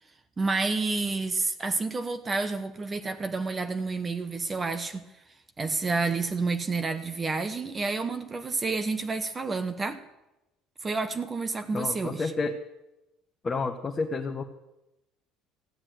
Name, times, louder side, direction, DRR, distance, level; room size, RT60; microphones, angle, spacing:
voice 1, 0.4-5.0 5.6-10.0 10.8-12.3, right 3 dB, 20° right, 1.0 m, -29 dB
voice 2, 11.7-12.6 13.4-14.4, left 3 dB, 25° left, 1.2 m, -30 dB
14.5 x 8.6 x 9.2 m
cardioid pair, 125°, 0 cm